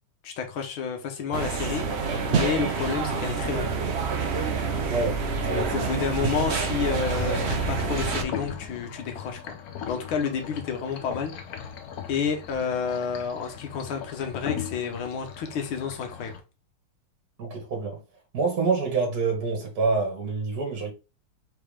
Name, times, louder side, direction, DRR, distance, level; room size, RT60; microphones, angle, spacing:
voice 1, 0.2-3.7 5.5-9.6 9.9-11.7 12.1-16.3, left 6 dB, 85° left, 1.8 m, -30 dB
sound 1, 1.3-8.2, right 5 dB, 70° right, 0.6 m, -27 dB
voice 2, 4.9-5.2 5.4-5.8 17.4-18.0 18.3-20.9, right 4 dB, 50° right, 2.2 m, -27 dB
sound 2, 7.2-16.4, left 8 dB, 65° left, 1.0 m, -38 dB
4.6 x 3.5 x 3.2 m
omnidirectional pair, 2.2 m